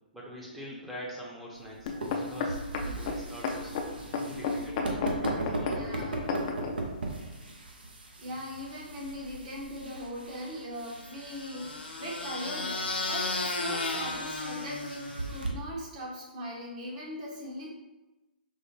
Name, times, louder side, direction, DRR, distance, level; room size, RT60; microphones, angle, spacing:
voice 1, 0.1-2.6 3.0-6.4, equal, ahead, -5 dB, 0.7 m, -44 dB
sound 1, 1.5-15.5, right 2 dB, 70° right, 0.7 m, -39 dB
sound 2, 1.9-6.7 7.4-7.5, left 4 dB, 40° left, 0.4 m, -32 dB
voice 2, 5.5-6.3 8.2-17.7, equal, 40° right, -3 dB, 1.1 m, -40 dB
sound 3, 10.9-15.5, left 3 dB, 80° left, 0.6 m, -34 dB
4.5 x 2.1 x 3.2 m, 1.1 s
figure-of-eight pair, 130°, 5 cm